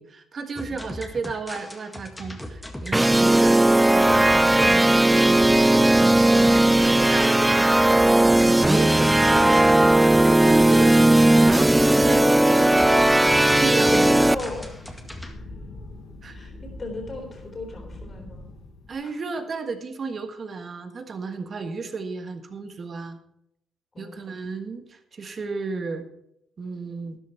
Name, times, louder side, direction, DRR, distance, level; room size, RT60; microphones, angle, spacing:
voice 1, 0.0-6.5 6.8-7.7 8.4-9.6 10.2-13.2 13.6-14.3 16.2-16.5 18.9-23.2 24.0-26.1 26.6-27.2, right 4 dB, 45° right, 8 dB, 1.5 m, -33 dB
sound 1, 0.6-15.3, left 1 dB, 5° left, 1.8 m, -38 dB
sound 2, 2.9-18.9, left 2 dB, 80° left, 5.1 m, -41 dB
sound 3, 2.9-14.3, right 1 dB, 10° right, 0.4 m, -17 dB
voice 2, 13.7-14.7 15.2-15.3 16.3-18.5 19.0-19.2 23.9-24.2, left 2 dB, 35° left, 1 dB, 3.6 m, -38 dB
12.5 x 10.5 x 4.5 m, 0.77 s
cardioid pair, 90°, 0 cm